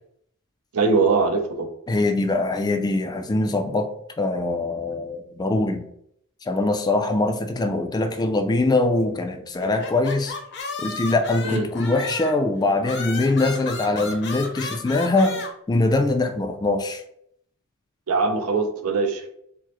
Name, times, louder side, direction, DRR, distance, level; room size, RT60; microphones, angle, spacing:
voice 1, 0.7-1.7 11.4-11.7 18.1-19.3, right 4 dB, 90° right, 5 dB, 0.6 m, -21 dB
voice 2, 1.9-3.9 4.2-5.8 6.4-10.3 10.8-17.0, left 2 dB, 20° left, 6 dB, 0.3 m, -23 dB
sound 1, 9.6-12.4 12.8-15.5, left 4 dB, 55° left, 0.6 m, -34 dB
4.6 x 2.0 x 3.0 m, 0.71 s
head